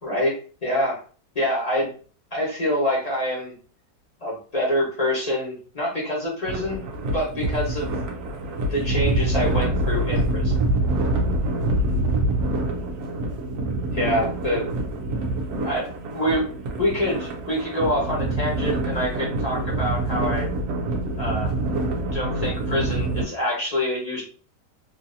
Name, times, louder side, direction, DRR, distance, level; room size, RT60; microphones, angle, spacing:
voice 1, 0.0-1.0 1.3-2.0 2.3-3.5 4.2-6.8 7.1-7.9 8.7-10.6 13.9-14.7 15.6-16.4 16.8-20.5 21.2-21.5 22.1-24.2, left 1 dB, 25° left, -4 dB, 1.0 m, -26 dB
sound 1, 6.5-23.3, right 2 dB, 65° right, 0.8 m, -25 dB
3.1 x 2.7 x 2.6 m, 0.40 s
omnidirectional pair, 1.9 m